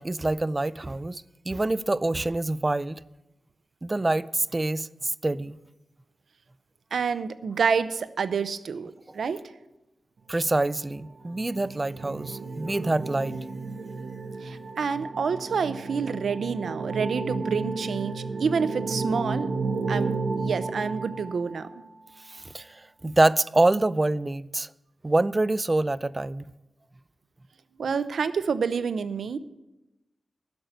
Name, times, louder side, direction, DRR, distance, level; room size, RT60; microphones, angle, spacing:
voice 1, 0.0-3.0 3.8-5.6 9.1-9.2 10.3-13.4 22.3-24.7 25.0-26.5, right 2 dB, 20° right, 0.3 m, -26 dB
voice 2, 6.9-9.4 14.4-19.5 19.9-21.7 27.8-29.4, right 5 dB, 85° right, 0.6 m, -28 dB
sound 1, 11.0-21.8, right 3 dB, 65° right, 1.1 m, -32 dB
11.5 x 6.6 x 9.1 m
wide cardioid pair, 130°, 0 cm